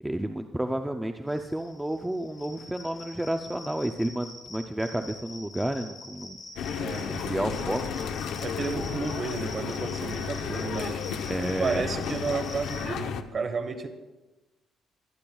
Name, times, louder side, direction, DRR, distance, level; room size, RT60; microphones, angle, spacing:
voice 1, 0.0-6.4 7.0-7.8 8.8-8.9 11.2-11.8, right 1 dB, 5° right, 5 dB, 0.4 m, -31 dB
sound 1, 1.3-12.8, left 3 dB, 40° left, 3.1 m, -45 dB
sound 2, 6.6-13.2, left 7 dB, 80° left, 0.7 m, -33 dB
voice 2, 6.7-7.6 8.4-11.0 11.6-13.9, right 4 dB, 35° right, 8 dB, 1.2 m, -32 dB
23.5 x 10.5 x 2.3 m, 1.1 s
cardioid pair, 145°, 0 cm